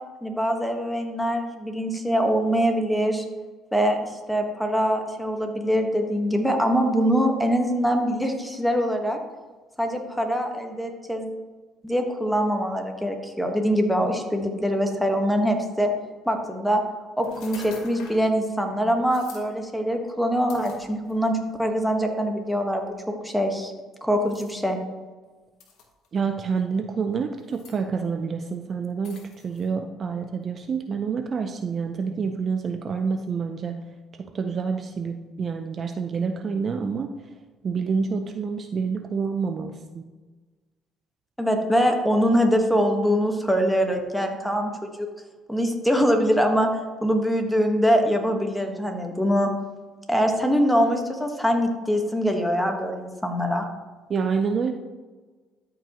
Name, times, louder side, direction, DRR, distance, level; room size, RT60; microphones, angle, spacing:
voice 1, 0.2-3.2 3.7-9.2 9.8-11.3 11.8-15.9 16.2-16.8 17.2-22.9 23.2-23.7 24.0-24.8 41.4-45.1 45.5-46.7 47.0-49.5 50.1-53.6, equal, ahead, 3 dB, 1.4 m, -23 dB
sound 1, 17.2-18.3 19.1-19.5 20.5-21.3 22.1-22.2 24.3-24.5 25.6-26.1 27.4-27.8 29.0-29.7, left 4 dB, 75° left, 1.5 m, -44 dB
voice 2, 26.1-33.8 34.2-37.1 37.6-40.0 54.1-54.7, right 5 dB, 45° right, 7 dB, 0.6 m, -28 dB
13.0 x 5.2 x 3.0 m, 1.3 s
supercardioid pair, 80°, 0 cm